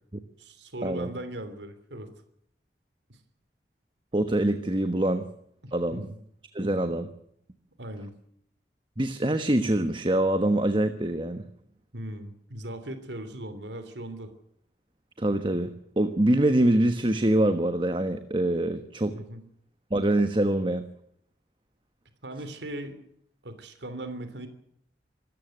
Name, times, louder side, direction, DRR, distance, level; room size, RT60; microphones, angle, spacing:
voice 1, 0.4-2.1 3.1-3.2 5.6-6.2 7.8-8.1 11.9-14.3 19.1-19.4 22.2-23.0 23.4-24.5, right 1 dB, 85° right, 10 dB, 3.2 m, -38 dB
voice 2, 4.1-5.3 5.7-6.1 6.5-7.1 9.0-11.4 15.2-19.2 19.9-20.8, right 1 dB, 30° right, 9 dB, 1.3 m, -24 dB
26.0 x 14.5 x 7.8 m, 0.70 s
head